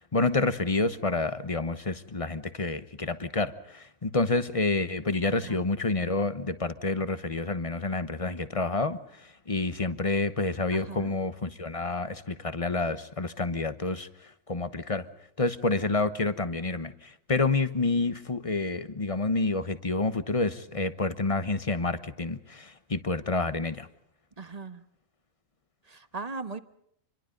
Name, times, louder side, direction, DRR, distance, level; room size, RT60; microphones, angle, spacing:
voice 1, 0.0-15.1 15.4-23.9, left 3 dB, 25° left, 13 dB, 1.1 m, -29 dB
voice 2, 10.7-11.1 24.4-24.8 25.9-26.6, right 4 dB, 30° right, 11 dB, 1.2 m, -38 dB
27.5 x 22.5 x 5.3 m, 0.71 s
omnidirectional pair, 1.4 m